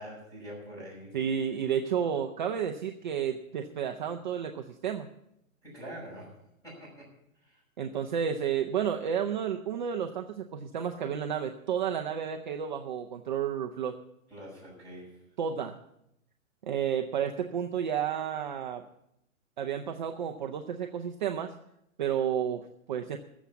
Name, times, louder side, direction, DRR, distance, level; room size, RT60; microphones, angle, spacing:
voice 1, 0.0-1.2 5.6-7.1 7.4-7.6 14.3-15.2, equal, 10° left, -4 dB, 5.7 m, -45 dB
voice 2, 1.1-5.1 7.8-14.0 15.4-15.8 16.6-18.8 19.6-21.5 22.0-23.2, right 8 dB, 35° right, 4 dB, 0.6 m, -31 dB
14.0 x 7.2 x 8.4 m, 0.81 s
hypercardioid pair, 160°, 41 cm